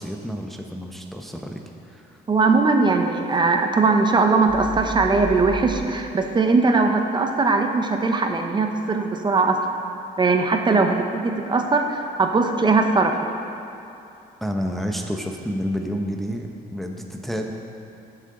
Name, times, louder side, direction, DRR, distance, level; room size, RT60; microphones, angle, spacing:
voice 1, 0.0-2.2 14.4-17.5, equal, ahead, 2 dB, 0.7 m, -30 dB
voice 2, 2.3-9.6 10.2-13.2, right 3 dB, 25° right, 4 dB, 0.8 m, -20 dB
sound 1, 4.5-5.8, right 1 dB, 50° left, 2.0 m, -33 dB
15.0 x 7.5 x 3.8 m, 2.7 s
cardioid pair, 110°, 17 cm